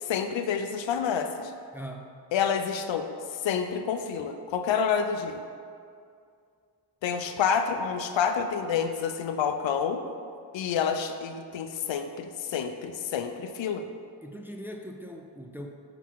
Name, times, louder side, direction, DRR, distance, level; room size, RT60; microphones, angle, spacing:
voice 1, 0.0-1.5 2.3-3.1 3.4-5.4 7.0-10.0 10.5-13.9, left 7 dB, 80° left, 7 dB, 0.6 m, -28 dB
voice 2, 1.7-2.1 14.2-15.7, equal, 5° right, 2 dB, 0.4 m, -40 dB
5.7 x 3.9 x 4.6 m, 2.3 s
wide cardioid pair, 85°, 45 cm